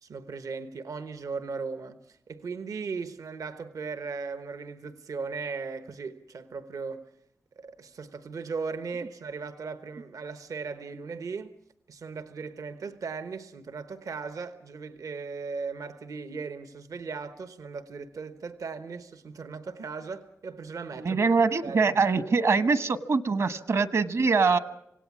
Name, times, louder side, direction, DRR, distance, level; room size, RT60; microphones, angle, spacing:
voice 1, 0.0-7.0 7.6-11.5 11.9-21.2 21.6-21.8, right 4 dB, 80° right, 1.1 m, -37 dB
voice 2, 21.0-24.6, right 4 dB, 60° right, 1.2 m, -23 dB
26.5 x 17.5 x 7.3 m
wide cardioid pair, 80°, 6 cm